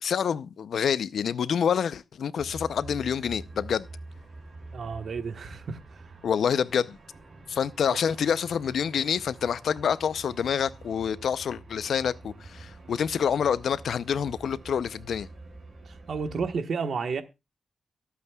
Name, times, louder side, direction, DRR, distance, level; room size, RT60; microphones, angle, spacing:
voice 1, 0.0-3.9 6.2-7.0 7.5-15.3, left 7 dB, 80° left, 0.5 m, -27 dB
sound 1, 2.4-16.6, right 2 dB, 40° right, 5.8 m, -46 dB
voice 2, 4.7-6.1 15.8-17.2, right 5 dB, 60° right, 1.3 m, -32 dB
23.0 x 8.4 x 2.3 m
wide cardioid pair, 175°, 0 cm